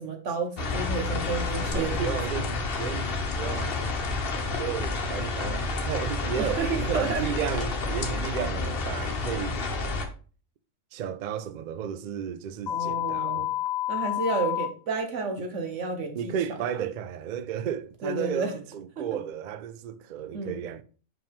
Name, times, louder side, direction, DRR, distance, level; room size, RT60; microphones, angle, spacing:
voice 1, 0.0-2.1 6.4-7.2 12.7-13.5 13.9-16.3 18.0-18.5 19.0-19.1 20.3-20.6, right 4 dB, 65° right, 1.5 m, -31 dB
sound 1, 0.6-10.1, left 3 dB, 50° left, 1.1 m, -30 dB
voice 2, 1.7-3.9 4.5-9.6 10.9-13.5 16.1-20.8, right 9 dB, 80° right, 0.4 m, -33 dB
sound 2, 12.7-14.7, left 14 dB, 90° left, 1.3 m, -29 dB
5.6 x 5.1 x 3.6 m
omnidirectional pair, 1.4 m